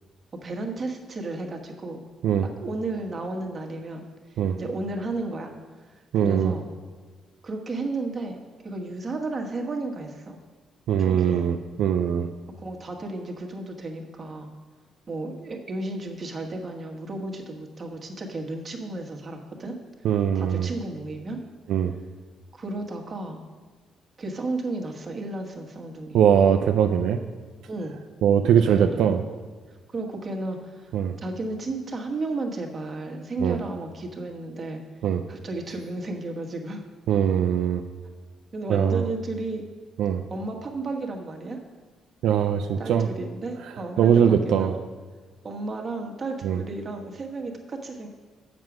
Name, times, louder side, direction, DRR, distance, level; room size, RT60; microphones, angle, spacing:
voice 1, 0.4-2.0 2.6-4.0 4.3-5.5 6.1-6.6 7.4-8.4 8.6-10.4 11.0-11.4 12.6-14.5 15.1-19.8 20.3-21.4 22.5-23.4 24.2-26.2 27.7-28.0 28.6-29.1 29.9-30.9 31.2-34.8 35.3-36.8 38.5-39.6 40.3-41.6 42.8-44.8 45.4-48.1, right 2 dB, 35° right, 2 dB, 1.3 m, -33 dB
voice 2, 6.1-6.5 10.9-12.3 20.0-20.7 21.7-21.9 26.1-27.2 28.2-29.2 30.9-31.2 33.4-33.6 35.0-35.2 37.1-37.8 38.7-39.0 40.0-40.2 42.2-43.1 44.0-44.7 46.4-46.6, right 8 dB, 80° right, 6 dB, 0.4 m, -21 dB
7.4 x 6.2 x 6.1 m, 1.4 s
cardioid pair, 90°, 0 cm